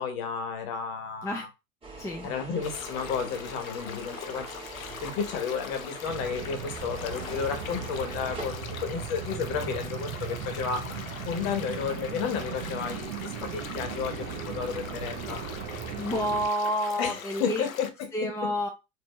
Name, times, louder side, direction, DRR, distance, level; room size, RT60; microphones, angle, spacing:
voice 1, 0.0-1.5 2.2-4.5 4.7-15.4 17.0-18.5, left 6 dB, 55° left, 1.3 m, -32 dB
sound 1, 1.8-8.5, right 2 dB, 15° right, 1.6 m, -43 dB
voice 2, 2.0-2.3 16.0-17.6 18.1-18.7, equal, 5° left, 0.6 m, -29 dB
sound 2, 2.6-17.9, left 7 dB, 85° left, 0.7 m, -42 dB
sound 3, 6.1-16.5, right 7 dB, 50° right, 0.9 m, -37 dB
4.2 x 2.6 x 3.2 m
hypercardioid pair, 90°, 40 cm